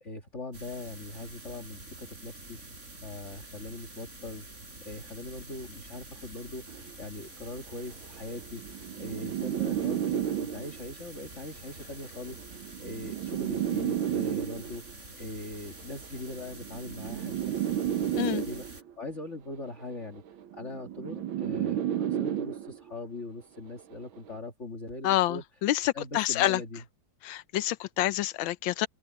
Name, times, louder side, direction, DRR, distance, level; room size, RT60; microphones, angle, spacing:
voice 1, 0.0-2.6 3.0-20.2 20.5-25.4 25.9-26.8, left 2 dB, 35° left, 2.2 m, -41 dB
sound 1, 0.5-18.8, right 2 dB, 35° right, 4.9 m, -47 dB
sound 2, 6.7-6.9 7.8-10.9 11.9-14.9 15.9-18.9 19.9-22.9 23.9-24.3, right 10 dB, 90° right, 1.8 m, -32 dB
voice 2, 25.0-26.6 27.2-28.9, left 14 dB, 80° left, 1.5 m, -27 dB
open air
omnidirectional pair, 2.1 m